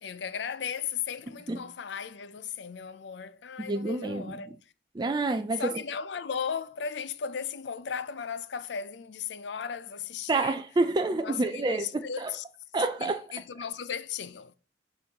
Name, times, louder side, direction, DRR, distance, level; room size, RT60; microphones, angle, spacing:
voice 1, 0.0-4.6 5.6-10.6 11.1-12.4 13.0-14.6, left 7 dB, 70° left, 0.5 m, -36 dB
voice 2, 3.6-4.4 4.9-5.7 10.3-12.3 12.7-13.2, right 2 dB, 25° right, 0.4 m, -28 dB
11.0 x 4.0 x 2.9 m
head